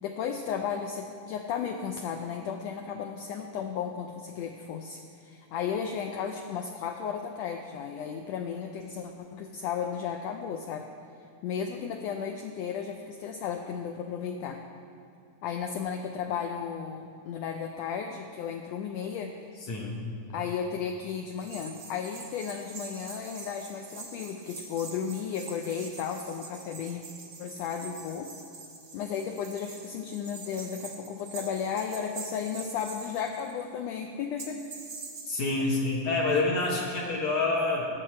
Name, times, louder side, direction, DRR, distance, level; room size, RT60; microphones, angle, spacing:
voice 1, 0.0-10.9 11.4-14.6 15.4-19.3 20.3-27.0 27.4-28.3 28.9-34.6 35.6-35.8, left 7 dB, 85° left, 4 dB, 1.5 m, -34 dB
sound 1, 21.4-33.7 34.4-35.4, right 4 dB, 60° right, 0.8 m, -45 dB
voice 2, 35.3-37.9, left 3 dB, 65° left, -3 dB, 2.4 m, -27 dB
18.5 x 6.7 x 4.3 m, 2.4 s
omnidirectional pair, 3.6 m